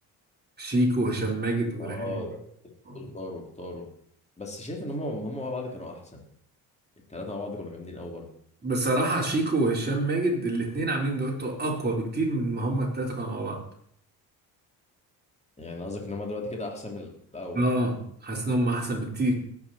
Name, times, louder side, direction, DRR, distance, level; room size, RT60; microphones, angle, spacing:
voice 1, 0.6-2.2 2.8-3.1 8.6-13.6 17.5-19.3, right 1 dB, 25° right, -1 dB, 4.5 m, -27 dB
voice 2, 1.8-2.4 2.9-3.9 4.4-6.2 7.1-8.3 15.6-17.6, left 2 dB, 15° left, 0 dB, 3.4 m, -36 dB
19.5 x 9.0 x 4.4 m, 0.65 s
cardioid pair, 85°, 42 cm